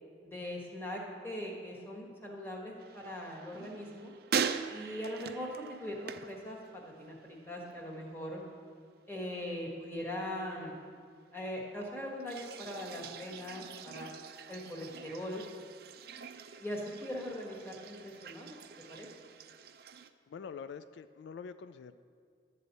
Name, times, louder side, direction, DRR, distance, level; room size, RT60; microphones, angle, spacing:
voice 1, 0.2-4.1 4.7-5.5 5.8-8.4 9.1-10.7 11.3-14.1 14.5-15.4 16.6-18.6 18.9-19.1, left 1 dB, 10° left, -2 dB, 1.4 m, -41 dB
sound 1, 2.8-7.2 7.5-8.0 12.2-20.1, right 6 dB, 55° right, 0.4 m, -42 dB
voice 2, 20.3-21.9, left 6 dB, 75° left, 12 dB, 0.3 m, -45 dB
12.0 x 4.2 x 8.1 m, 2.2 s
head